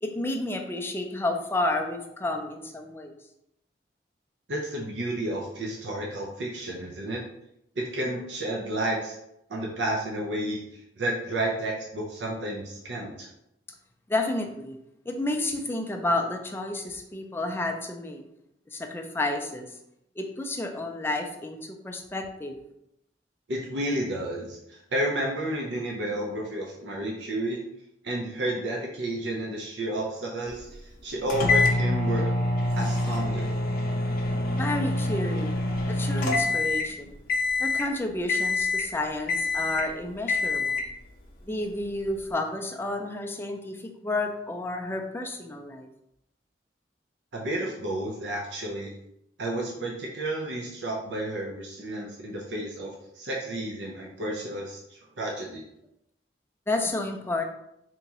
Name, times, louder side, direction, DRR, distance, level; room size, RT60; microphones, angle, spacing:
voice 1, 0.0-3.2 14.1-14.8 15.1-18.2 18.7-19.7 20.2-22.5 34.6-35.5 35.8-37.2 37.6-40.9 41.5-45.9 56.7-57.4, left 2 dB, 15° left, 3 dB, 0.3 m, -31 dB
voice 2, 4.5-7.2 7.8-9.2 9.5-13.3 23.5-27.6 28.0-30.7 31.0-32.3 32.7-33.5 47.3-48.9 49.4-55.6, right 1 dB, 80° right, -2 dB, 0.6 m, -31 dB
sound 1, 31.3-37.0 37.3-37.9 38.3-38.9 39.3-39.9 40.3-40.9, left 2 dB, 55° left, 0.6 m, -26 dB
3.5 x 2.9 x 2.9 m, 0.80 s
head